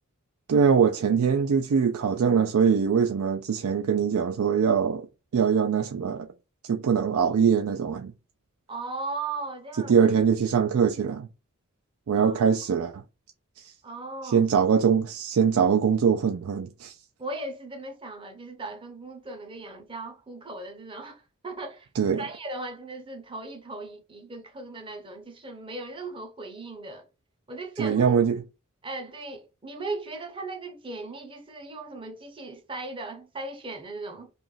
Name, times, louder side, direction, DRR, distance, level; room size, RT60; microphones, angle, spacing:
voice 1, 0.5-5.1 5.3-6.3 6.7-8.1 9.9-11.3 12.1-13.0 14.2-16.9 22.0-22.2 27.8-28.4, right 6 dB, 75° right, 0.4 m, -22 dB
voice 2, 8.7-10.0 12.1-12.5 13.8-14.5 17.2-21.9 22.2-27.0 27.5-28.1 28.8-34.3, right 2 dB, 20° right, 0.7 m, -37 dB
3.0 x 2.4 x 3.9 m
head